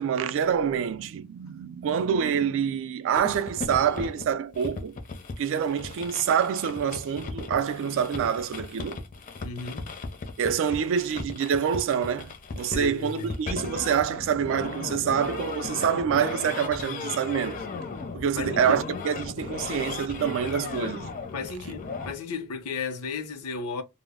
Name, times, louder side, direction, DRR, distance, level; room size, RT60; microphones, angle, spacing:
voice 1, 0.0-5.0 5.4-9.0 10.4-17.6 18.1-21.1, right 8 dB, 60° right, 0.3 m, -26 dB
sound 1, 3.2-22.1, left 4 dB, 35° left, 0.4 m, -36 dB
voice 2, 9.4-9.9 12.7-13.3 18.4-19.0 21.3-23.8, left 4 dB, 80° left, 0.6 m, -34 dB
2.0 x 2.0 x 3.4 m
head